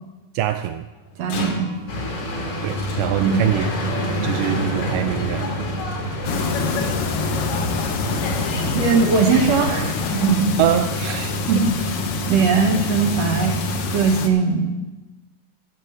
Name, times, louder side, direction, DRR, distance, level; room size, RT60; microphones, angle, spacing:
voice 1, 0.4-0.9 2.6-3.7 4.2-5.5 10.6-11.4, right 12 dB, 80° right, 8 dB, 2.0 m, -23 dB
sound 1, 1.0-14.4, right 1 dB, 60° left, 3.4 m, -31 dB
voice 2, 1.2-1.7 3.2-3.5 8.7-10.6 11.5-13.6 13.9-14.7, right 5 dB, 60° right, 4 dB, 1.9 m, -20 dB
sound 2, 1.9-10.4, left 1 dB, 45° left, 2.9 m, -28 dB
sound 3, 6.2-14.3, left 5 dB, 75° left, 1.3 m, -27 dB
14.0 x 6.8 x 7.8 m, 1.1 s
omnidirectional pair, 4.1 m